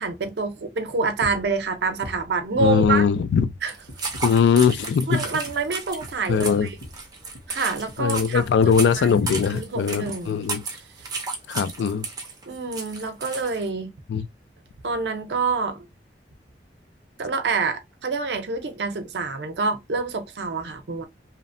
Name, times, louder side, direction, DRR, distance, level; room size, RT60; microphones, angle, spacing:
voice 1, 0.0-3.0 3.6-3.7 5.1-6.8 7.5-9.2 9.5-10.4 11.0-11.1 12.5-13.9 14.8-15.9 17.2-21.1, right 4 dB, 70° right, 0.5 m, -27 dB
sound 1, 1.2-1.6 2.0-3.6 3.9-4.4 4.7-4.9 5.2-7.6 7.9-8.4 8.7-8.9 9.2-9.3, left 1 dB, 50° left, 0.8 m, -41 dB
voice 2, 2.6-3.5 4.2-5.2 6.3-6.7 8.0-10.6 11.5-12.1 14.1-14.3, left 6 dB, 80° left, 0.3 m, -20 dB
sound 2, 3.7-13.7, right 4 dB, 20° right, 0.5 m, -34 dB
2.8 x 2.1 x 2.5 m
head